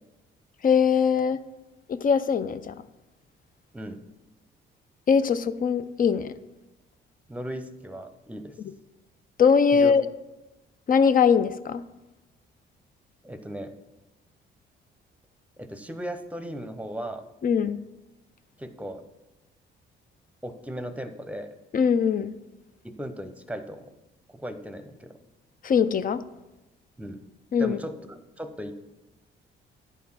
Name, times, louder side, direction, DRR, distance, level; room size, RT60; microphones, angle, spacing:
voice 1, 0.6-1.4 1.9-2.7 5.1-6.3 9.4-10.0 10.9-11.8 17.4-17.8 21.7-22.3 25.6-26.2 27.5-27.8, left 6 dB, 45° left, 13 dB, 0.5 m, -21 dB
voice 2, 7.3-8.5 9.7-9.9 13.2-13.7 15.6-17.3 18.6-19.0 20.4-21.5 22.8-23.9 24.3-25.2 27.0-27.2 27.6-28.7, equal, 5° right, 9 dB, 0.8 m, -37 dB
10.0 x 4.6 x 5.6 m, 1.0 s
cardioid pair, 90°, 20 cm